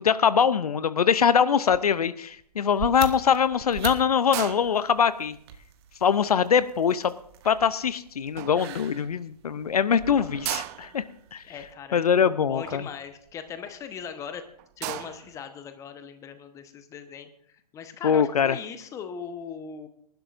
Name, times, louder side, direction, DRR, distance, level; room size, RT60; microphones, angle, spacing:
voice 1, 0.0-5.4 6.0-7.1 7.4-11.0 11.3-11.4 11.9-12.9 18.0-18.6, left 7 dB, 65° left, 16 dB, 0.6 m, -23 dB
sound 1, 1.7-2.0 2.3-7.9 8.4-9.1 9.6-9.7 9.8-9.9 10.2-13.8 14.3-14.4 14.6-15.4, right 16 dB, 25° right, 0.4 m, -38 dB
sound 2, 2.6-11.7, right 8 dB, 40° right, 1.3 m, -44 dB
voice 2, 11.4-14.4 14.8-17.3 17.7-19.9, left 7 dB, 15° left, 9 dB, 1.0 m, -39 dB
25.0 x 11.5 x 2.6 m, 0.65 s
figure-of-eight pair, 125°, 20 cm